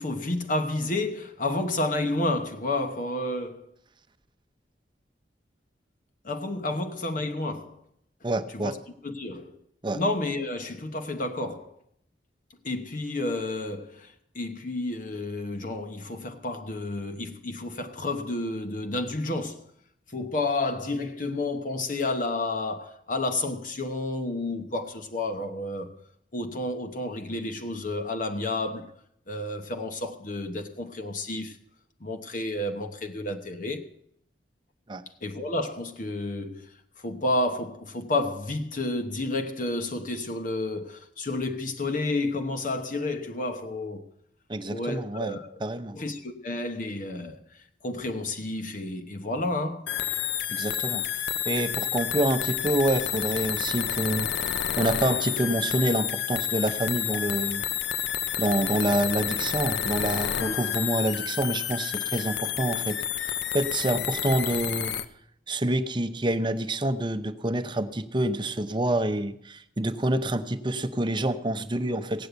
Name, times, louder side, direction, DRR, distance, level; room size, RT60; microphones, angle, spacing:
voice 1, 0.0-3.7 6.2-7.8 8.5-8.8 9.0-9.6 9.9-11.7 12.6-19.6 20.1-25.9 26.3-28.9 29.3-31.6 32.0-33.9 35.2-44.0 44.7-45.6 45.9-49.9 60.4-60.5, left 2 dB, 45° left, 1.0 m, -31 dB
voice 2, 8.2-8.8 9.8-10.0 34.9-35.0 44.5-46.0 50.5-51.0 51.4-57.6 58.4-64.9 65.5-72.3, right 1 dB, 25° right, 0.8 m, -27 dB
sound 1, 49.9-65.1, left 10 dB, 70° left, 0.7 m, -30 dB
17.0 x 8.5 x 8.0 m
head